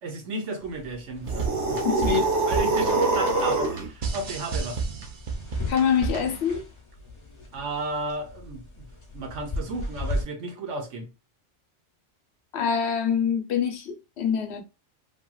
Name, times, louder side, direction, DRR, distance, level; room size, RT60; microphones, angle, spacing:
voice 1, 0.0-1.8 2.5-4.8 7.5-8.8 9.1-11.1, right 2 dB, 90° right, 1.2 m, -33 dB
sound 1, 0.6-10.2, left 3 dB, 30° left, 0.6 m, -36 dB
sound 2, 1.2-6.4, right 4 dB, 50° right, 0.7 m, -32 dB
sound 3, 1.2-3.9, right 3 dB, 70° right, 1.2 m, -24 dB
voice 2, 1.8-2.3 5.7-6.6 12.5-14.6, left 7 dB, 65° left, 0.9 m, -25 dB
2.8 x 2.8 x 2.3 m
omnidirectional pair, 1.2 m